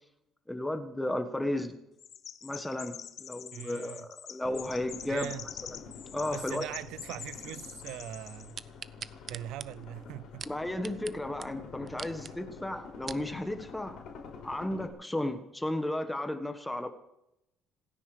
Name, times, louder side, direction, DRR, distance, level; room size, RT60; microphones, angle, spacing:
voice 1, 0.5-1.8 2.4-5.3 5.7-5.8 6.1-6.6 10.4-14.0 14.4-16.9, left 1 dB, 5° left, 1.3 m, -34 dB
Chirp tweet, 2.0-8.5, left 8 dB, 40° left, 0.9 m, -45 dB
voice 2, 3.5-4.0 5.1-5.4 6.3-8.6 9.3-10.5, right 14 dB, 85° right, 0.5 m, -41 dB
sound 1, 4.4-14.9, left 5 dB, 60° left, 5.1 m, -48 dB
sound 2, 8.6-11.1 11.4-11.5 11.9-12.3 12.8-13.3 13.9-14.0, right 7 dB, 30° right, 0.5 m, -42 dB
27.0 x 9.9 x 5.0 m
cardioid pair, 170°, 0 cm